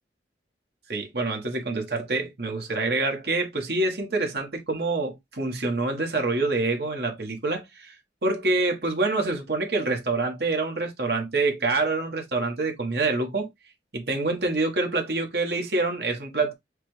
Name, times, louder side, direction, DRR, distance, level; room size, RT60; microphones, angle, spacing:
voice 1, 0.9-7.9 8.2-13.5 13.9-16.5, right 3 dB, 60° right, 1.4 m, -26 dB
6.6 x 2.5 x 3.2 m
head